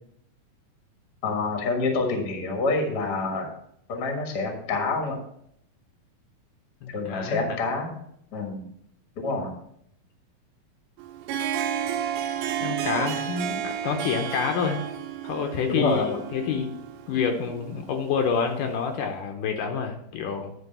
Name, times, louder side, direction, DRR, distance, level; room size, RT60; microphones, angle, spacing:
voice 1, 1.2-3.4 3.9-5.2 6.9-7.9 8.3-8.7 9.1-9.5 12.8-13.0 15.7-16.2, left 3 dB, 45° left, 2 dB, 1.4 m, -27 dB
voice 2, 6.8-7.6 12.6-14.8 15.2-16.7 17.1-20.5, left 6 dB, 75° left, 4 dB, 2.3 m, -28 dB
Harp, 11.0-18.7, right 9 dB, 80° right, 2.3 m, -32 dB
9.9 x 4.3 x 5.5 m, 0.71 s
omnidirectional pair, 4.1 m